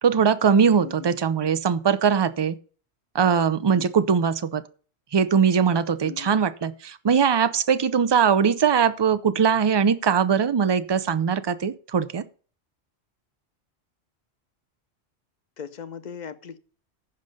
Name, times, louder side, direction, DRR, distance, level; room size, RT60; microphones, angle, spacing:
voice 1, 0.0-2.5 3.1-4.6 5.1-12.2, right 7 dB, 35° right, 0.4 m, -21 dB
voice 2, 0.8-1.1 3.8-3.9 6.0-6.3 15.6-16.6, left 8 dB, 45° left, 0.7 m, -38 dB
14.5 x 5.3 x 5.3 m
omnidirectional pair, 1.1 m